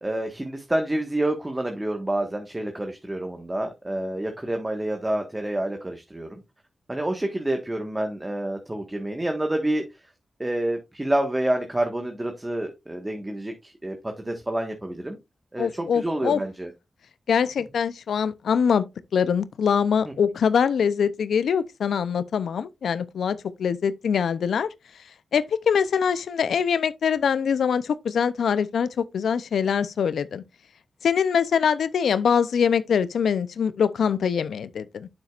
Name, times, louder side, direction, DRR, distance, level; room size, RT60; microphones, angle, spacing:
voice 1, 0.0-6.4 6.9-9.8 10.4-15.2 15.5-16.7, right 1 dB, 20° right, 1.5 m, -28 dB
voice 2, 15.6-16.4 17.3-18.8 19.1-24.7 25.3-30.4 31.0-35.1, left 7 dB, 90° left, 0.6 m, -23 dB
8.8 x 7.4 x 2.5 m
cardioid pair, 65°, 0 cm